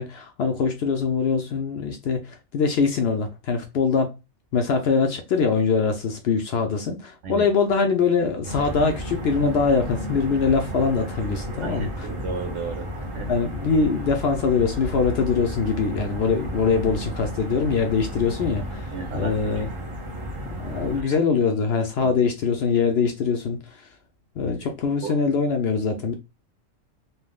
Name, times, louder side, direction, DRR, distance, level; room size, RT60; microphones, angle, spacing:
voice 1, 0.0-4.1 4.5-12.1 13.3-19.7 20.4-23.9 24.4-26.1, left 5 dB, 65° left, 0.7 m, -23 dB
sound 1, 8.4-21.0, equal, 35° right, 0.5 m, -33 dB
voice 2, 11.6-13.3 18.9-19.6 21.0-21.2 22.0-22.1 24.4-24.5 25.0-25.2, right 3 dB, 65° right, 1.2 m, -34 dB
3.4 x 2.5 x 2.3 m
omnidirectional pair, 1.4 m